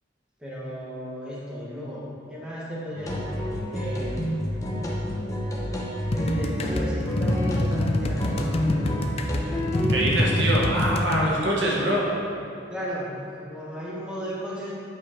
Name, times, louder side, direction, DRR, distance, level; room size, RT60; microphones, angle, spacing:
voice 1, 0.4-3.4 3.7-4.5 6.1-9.2 12.7-14.7, equal, 5° right, -7 dB, 1.4 m, -35 dB
sound 1, 3.0-10.4, equal, 15° left, 1.0 m, -29 dB
sound 2, 6.1-11.3, left 1 dB, 35° left, 0.4 m, -26 dB
voice 2, 9.9-12.0, right 1 dB, 70° right, -4 dB, 1.5 m, -24 dB
8.5 x 5.5 x 4.4 m, 2.6 s
head